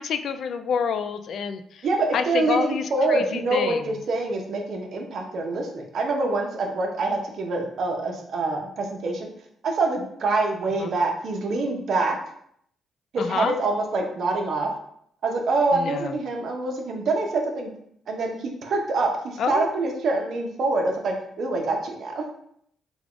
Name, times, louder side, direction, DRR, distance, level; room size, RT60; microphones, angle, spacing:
voice 1, 0.0-1.9 2.1-3.8 10.8-10.9 13.2-13.6 15.7-16.1 19.4-19.7, left 6 dB, 65° left, 10 dB, 0.3 m, -28 dB
voice 2, 1.8-9.3 9.6-12.2 13.1-14.7 15.2-17.7 18.1-22.3, right 3 dB, 60° right, 2 dB, 0.7 m, -25 dB
3.5 x 2.3 x 3.7 m, 0.68 s
cardioid pair, 90°, 0 cm